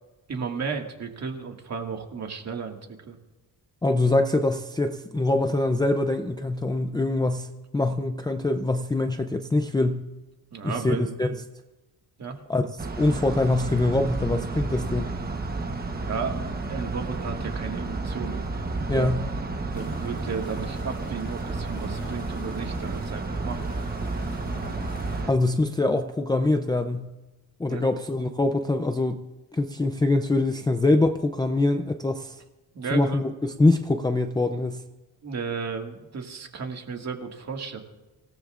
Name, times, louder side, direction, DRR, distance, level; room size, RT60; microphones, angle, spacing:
voice 1, 0.3-3.2 10.5-11.2 12.2-12.4 16.1-18.5 18.9-19.3 19.7-23.7 27.7-27.9 32.7-33.2 35.2-37.8, right 5 dB, 40° right, 2 dB, 1.9 m, -34 dB
voice 2, 3.8-7.5 7.7-10.0 10.6-11.3 12.5-12.6 13.0-15.1 18.9-19.2 25.3-27.1 27.6-29.2 29.5-32.4 32.9-34.8, left 2 dB, 10° left, 5 dB, 0.4 m, -24 dB
sound 1, 12.8-25.3, right 3 dB, 25° right, 1.1 m, -31 dB
sound 2, 19.7-25.2, left 2 dB, 30° left, 2.3 m, -46 dB
26.0 x 17.5 x 2.5 m, 1.1 s
wide cardioid pair, 175°, 40 cm